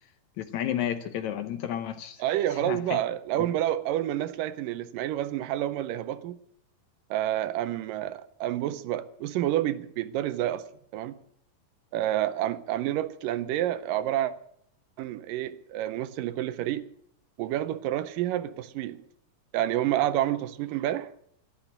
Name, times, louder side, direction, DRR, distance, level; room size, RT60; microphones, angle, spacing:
voice 1, 0.4-2.2 2.5-3.0 3.4-3.5, left 10 dB, 70° left, 1.9 m, -32 dB
voice 2, 2.2-6.4 7.1-10.7 10.9-11.1 11.9-14.3 15.0-16.9 17.4-19.0 19.5-21.1, right 13 dB, 80° right, 2.4 m, -29 dB
12.0 x 12.0 x 8.7 m
omnidirectional pair, 3.9 m